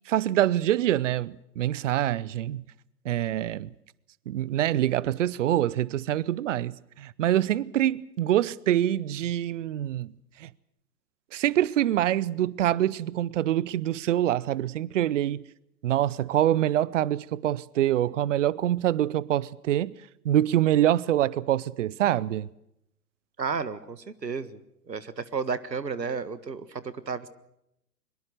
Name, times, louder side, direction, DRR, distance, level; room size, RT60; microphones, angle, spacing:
voice 1, 0.1-2.6 3.0-3.7 4.3-10.1 10.4-10.5 11.3-15.4 15.8-19.9 20.2-22.5, right 12 dB, 50° right, 0.8 m, -25 dB
voice 2, 23.4-24.6 24.9-27.3, right 5 dB, 80° right, 1.7 m, -32 dB
23.0 x 23.0 x 6.5 m
figure-of-eight pair, 115°, 49 cm